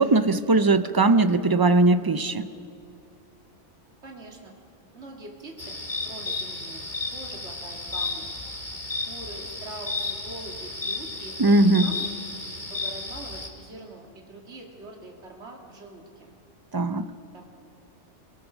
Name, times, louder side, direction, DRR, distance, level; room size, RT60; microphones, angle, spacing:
voice 1, 0.0-2.5 11.4-11.9 16.7-17.1, right 2 dB, 25° right, 11 dB, 0.5 m, -20 dB
voice 2, 4.0-4.5 4.9-6.8 7.1-8.3 9.1-12.1 12.7-16.3 17.3-17.4, right 2 dB, 70° right, 0 dB, 2.6 m, -43 dB
sound 1, 5.6-13.5, left 3 dB, 40° left, 2.4 m, -33 dB
27.5 x 19.5 x 6.2 m, 2.4 s
omnidirectional pair, 1.2 m